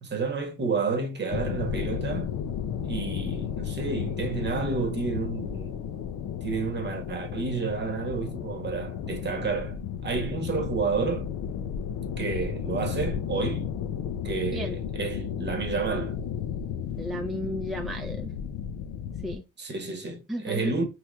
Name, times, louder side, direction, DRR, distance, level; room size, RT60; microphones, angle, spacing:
voice 1, 0.0-2.3 2.8-5.7 6.4-9.8 10.0-11.3 12.2-13.6 14.2-16.1 19.6-20.8, right 4 dB, 35° right, 0.9 m, -30 dB
sound 1, 1.3-19.4, left 8 dB, 75° left, 0.5 m, -33 dB
voice 2, 17.0-18.3 19.2-19.7 20.3-20.7, equal, ahead, 0.4 m, -34 dB
3.1 x 3.0 x 2.3 m
cardioid pair, 90°, 30 cm